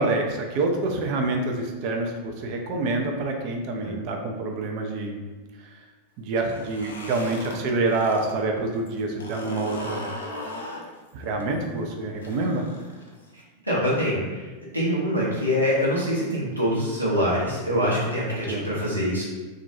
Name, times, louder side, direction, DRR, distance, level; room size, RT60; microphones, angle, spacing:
voice 1, 0.0-5.2 5.6-5.7 6.2-10.1 11.1-12.6 18.5-18.7, right 2 dB, 45° right, 2 dB, 0.4 m, -27 dB
sound 1, 6.4-8.3 8.6-13.4, left 1 dB, 70° left, 0.4 m, -38 dB
voice 2, 13.3-14.5 14.7-19.2, equal, 85° right, -7 dB, 0.8 m, -25 dB
2.4 x 2.2 x 2.6 m, 1.3 s
figure-of-eight pair, 90°, 0 cm